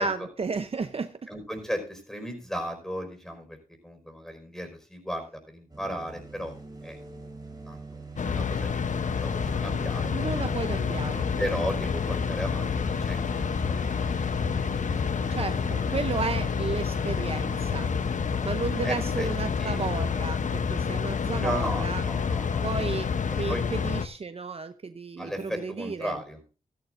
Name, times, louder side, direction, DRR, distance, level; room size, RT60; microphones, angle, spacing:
voice 1, 0.0-1.3 10.1-11.4 15.3-17.9 18.4-22.0 22.6-23.1 23.4-26.2, right 4 dB, 45° right, 10 dB, 0.7 m, -33 dB
voice 2, 1.3-3.6 3.8-6.5 6.8-7.0 7.6-8.0 8.3-8.9 9.1-10.1 11.4-12.7 13.0-13.8 18.8-19.3 19.6-19.8 21.3-22.7 23.5-23.6 25.2-26.4, equal, 5° left, 5 dB, 5.1 m, -35 dB
sound 1, 5.7-24.0, right 4 dB, 30° right, 3.9 m, -44 dB
sound 2, 8.2-24.1, left 6 dB, 60° left, 0.8 m, -28 dB
15.5 x 13.0 x 2.6 m, 0.33 s
cardioid pair, 55°, 14 cm